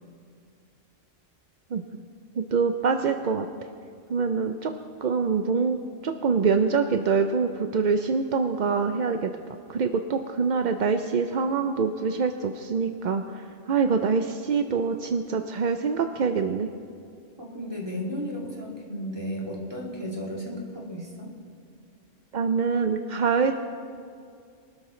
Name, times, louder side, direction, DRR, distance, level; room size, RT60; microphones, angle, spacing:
voice 1, 1.7-2.0 2.4-3.5 4.1-4.7 5.0-5.8 6.0-9.3 9.7-16.7 22.3-23.5, right 5 dB, 55° right, 6 dB, 0.5 m, -25 dB
voice 2, 17.4-21.3, equal, 20° right, -4 dB, 2.6 m, -34 dB
23.5 x 12.5 x 3.2 m, 2.4 s
omnidirectional pair, 1.4 m